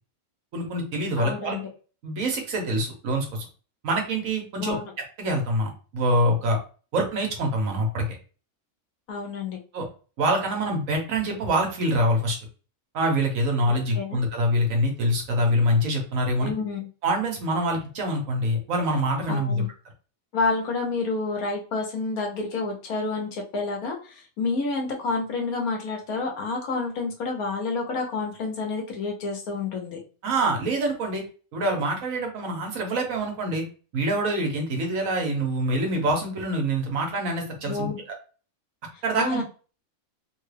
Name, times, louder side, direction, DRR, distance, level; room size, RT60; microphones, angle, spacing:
voice 1, 0.5-1.6 2.0-3.5 3.8-4.8 5.2-6.6 6.9-8.0 9.7-9.9 10.2-12.4 12.9-16.5 17.0-19.6 30.2-31.2 31.5-33.6 33.9-37.9 39.0-39.4, right 1 dB, 70° right, 2 dB, 1.3 m, -25 dB
voice 2, 1.2-1.6 4.6-4.9 9.1-9.6 13.7-14.2 16.4-16.9 19.3-19.7 20.3-30.0 37.6-38.0 39.2-39.4, left 3 dB, 85° left, 2 dB, 1.3 m, -29 dB
3.3 x 2.3 x 3.2 m, 0.37 s
omnidirectional pair, 1.5 m